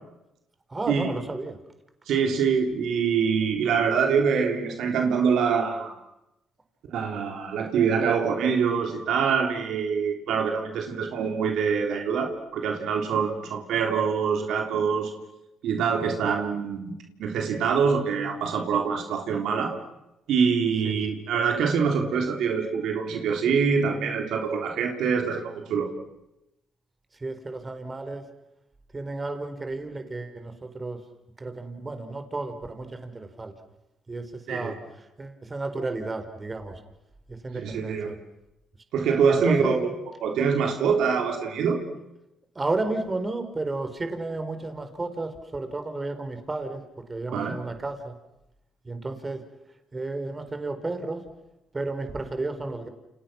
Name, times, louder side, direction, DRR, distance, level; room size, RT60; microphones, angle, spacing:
voice 1, 0.7-1.6 20.8-21.0 27.2-28.2 28.9-31.0 31.4-33.5 34.1-34.7 35.2-36.7 37.4-38.1 39.2-39.7 42.6-46.8 47.1-48.1 48.9-49.4 49.9-51.2 51.7-52.9, right 2 dB, 30° right, 8 dB, 4.5 m, -32 dB
voice 2, 2.1-5.9 6.9-15.1 15.6-16.9 17.2-19.7 20.3-25.9 34.5-34.8 37.5-38.1 38.9-39.9 40.2-41.8 47.3-47.6, right 6 dB, 75° right, 3 dB, 3.4 m, -25 dB
29.0 x 29.0 x 6.2 m, 0.90 s
supercardioid pair, 60°, 0 cm